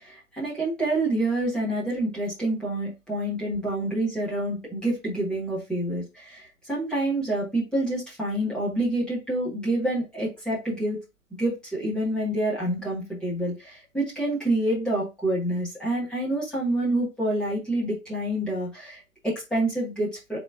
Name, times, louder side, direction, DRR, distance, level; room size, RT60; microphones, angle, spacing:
voice 1, 0.0-11.0 11.4-20.4, right 1 dB, ahead, -7 dB, 1.1 m, -27 dB
4.1 x 2.9 x 3.6 m, 0.25 s
figure-of-eight pair, 140°, 43 cm